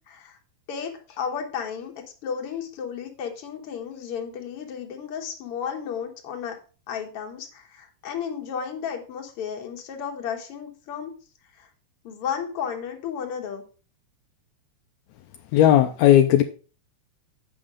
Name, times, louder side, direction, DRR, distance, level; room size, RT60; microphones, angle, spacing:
voice 1, 0.1-0.4 0.7-6.6 6.9-11.1 11.5-11.7 12.0-13.6, left 7 dB, 55° left, 3 dB, 2.0 m, -33 dB
voice 2, 15.5-16.4, left 11 dB, 80° left, 6 dB, 1.7 m, -16 dB
8.3 x 5.6 x 4.9 m, 0.36 s
omnidirectional pair, 3.6 m